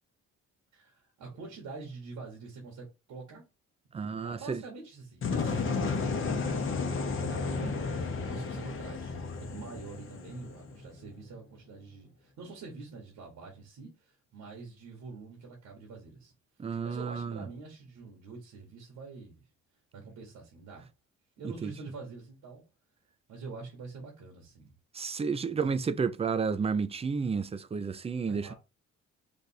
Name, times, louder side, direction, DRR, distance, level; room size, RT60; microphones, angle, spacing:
voice 1, 0.7-3.4 3.9-16.3 16.6-19.5 19.9-20.9 21.4-22.6 23.3-24.7 25.5-25.9 28.3-28.5, right 4 dB, 75° right, 1.4 m, -46 dB
voice 2, 3.9-4.6 7.6-7.7 16.6-17.5 21.4-21.7 24.9-28.5, right 5 dB, 20° right, 0.4 m, -31 dB
sound 1, 5.2-11.1, left 4 dB, 45° left, 0.9 m, -33 dB
3.4 x 2.5 x 4.2 m
cardioid pair, 90°, 30 cm